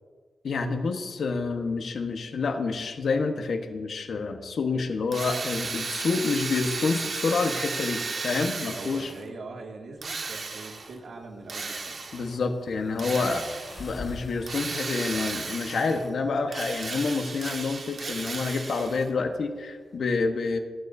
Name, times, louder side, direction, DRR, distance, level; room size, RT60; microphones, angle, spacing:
voice 1, 0.4-9.1 12.1-13.4 13.8-20.6, left 4 dB, 75° left, 5 dB, 1.2 m, -28 dB
Drill, 5.1-9.3 10.0-11.0 11.5-12.3 13.0-13.9 14.5-16.1 16.5-19.1, right 4 dB, 55° right, 1.6 m, -34 dB
voice 2, 8.7-12.0 13.1-13.4, right 3 dB, 70° right, 0 dB, 2.4 m, -42 dB
sound 1, 10.0-20.0, left 2 dB, 35° left, 3.6 m, -49 dB
27.0 x 9.2 x 2.7 m, 1.5 s
cardioid pair, 70°, 0 cm